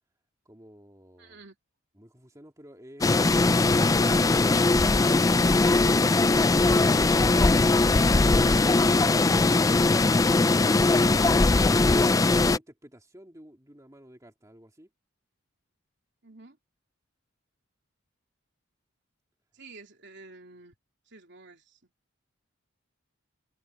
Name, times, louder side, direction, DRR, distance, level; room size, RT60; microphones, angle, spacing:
voice 1, 0.4-1.4 12.3-14.9, equal, 15° right, 2.6 m, -52 dB
voice 2, 1.2-1.6 16.2-16.6 19.5-20.7 21.1-21.8, right 3 dB, 55° right, 3.6 m, -50 dB
sound 1, 3.0-12.6, left 3 dB, 15° left, 0.3 m, -20 dB
open air
head